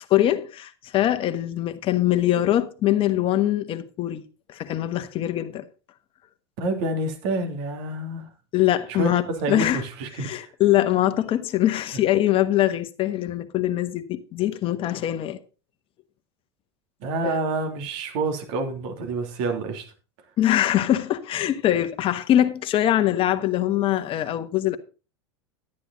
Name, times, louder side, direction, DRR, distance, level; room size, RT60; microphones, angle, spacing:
voice 1, 0.1-4.2 4.5-5.7 8.5-9.8 10.2-15.4 17.2-17.4 20.4-24.8, left 13 dB, 40° left, 1.4 m, -23 dB
voice 2, 6.6-8.3 8.9-10.5 17.0-19.9, right 2 dB, 60° right, 3.2 m, -28 dB
11.0 x 10.0 x 4.1 m
hypercardioid pair, 100°, 14 cm